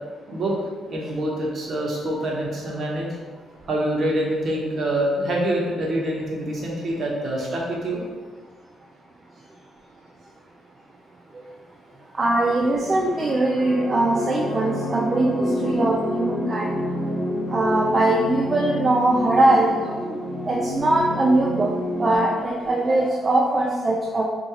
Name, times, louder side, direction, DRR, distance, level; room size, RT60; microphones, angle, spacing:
voice 1, 0.9-3.1 3.7-8.0, right 1 dB, 50° right, -3 dB, 1.0 m, -25 dB
voice 2, 12.2-16.7 17.5-19.7 20.5-21.7 22.0-24.2, right 2 dB, 30° right, -2 dB, 0.4 m, -21 dB
sound 1, 12.6-22.2, equal, 35° left, 1.3 m, -29 dB
4.7 x 2.5 x 3.0 m, 1.5 s
cardioid pair, 90°, 0 cm